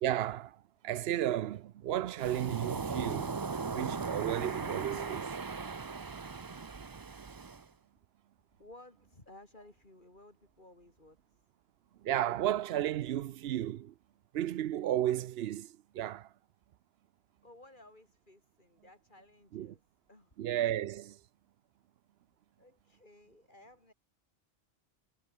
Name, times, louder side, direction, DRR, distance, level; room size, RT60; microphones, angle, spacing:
voice 1, 0.0-5.4 12.0-13.9 14.3-16.3 19.5-19.7 20.4-21.2, right 12 dB, 65° right, 0.8 m, -34 dB
Waves surf, 2.2-7.6, right 4 dB, 30° right, 0.4 m, -38 dB
voice 2, 8.6-11.4 17.4-19.8 20.1-20.4 22.6-23.9, left 1 dB, 45° left, 5.1 m, -57 dB
omnidirectional pair, 1.2 m